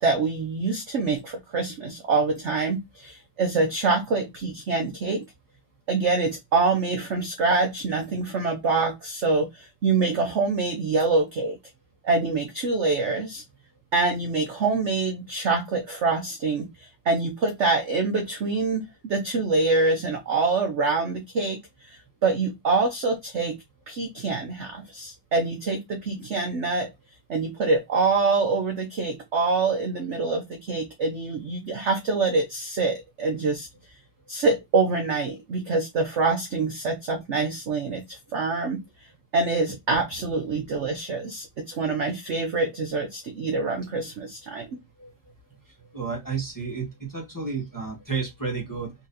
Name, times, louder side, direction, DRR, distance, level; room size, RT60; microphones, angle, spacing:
voice 1, 0.0-5.2 5.9-11.6 12.0-13.4 13.9-21.6 21.8-23.6 23.9-26.9 27.3-33.7 34.3-38.8 39.3-44.7, right 3 dB, 70° right, 4 dB, 0.6 m, -25 dB
voice 2, 45.9-48.9, right 5 dB, 15° left, -2 dB, 0.9 m, -31 dB
4.0 x 3.0 x 2.6 m, 0.19 s
omnidirectional pair, 2.1 m